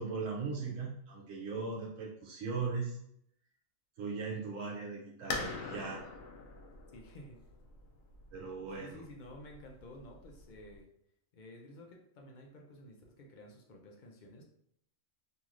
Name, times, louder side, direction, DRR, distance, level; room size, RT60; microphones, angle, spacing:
voice 1, 0.0-3.0 4.0-6.1 8.3-9.0, right 4 dB, 80° right, -1 dB, 1.0 m, -38 dB
sound 1, 5.3-10.8, left 3 dB, 90° left, 1.0 m, -44 dB
voice 2, 6.9-7.4 8.8-10.9 11.3-14.4, left 1 dB, 65° left, 0 dB, 0.4 m, -52 dB
3.0 x 2.6 x 2.4 m, 0.71 s
omnidirectional pair, 1.4 m